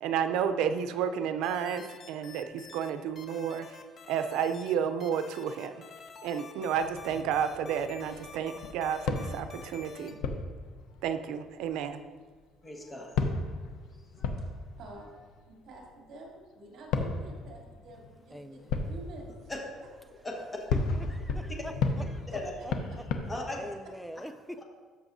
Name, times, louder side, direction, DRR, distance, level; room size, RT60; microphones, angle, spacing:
voice 1, 0.0-3.7 4.1-5.7 6.2-10.2 11.0-12.0, right 8 dB, 80° right, 10 dB, 0.5 m, -31 dB
sound 1, 1.4-2.9 3.2-4.7 5.0-10.1, left 5 dB, 35° left, 0.8 m, -48 dB
sound 2, 6.7-12.4 12.8-12.9 13.1-16.3 16.9-23.2, left 4 dB, 75° left, 0.7 m, -35 dB
voice 2, 12.6-13.1 13.9-14.5 19.5-19.6 20.2-20.4 22.3-22.5 23.3-23.6 24.6-24.7, left 2 dB, 15° left, 0 dB, 1.4 m, -38 dB
voice 3, 14.8-15.1 15.5-19.3 20.0-20.3 21.9-23.6, right 2 dB, 55° right, -2 dB, 2.6 m, -49 dB
voice 4, 18.3-18.8 21.0-22.7 23.6-24.6, equal, ahead, 8 dB, 0.4 m, -44 dB
13.0 x 6.0 x 2.7 m, 1.4 s
cardioid pair, 140°, 0 cm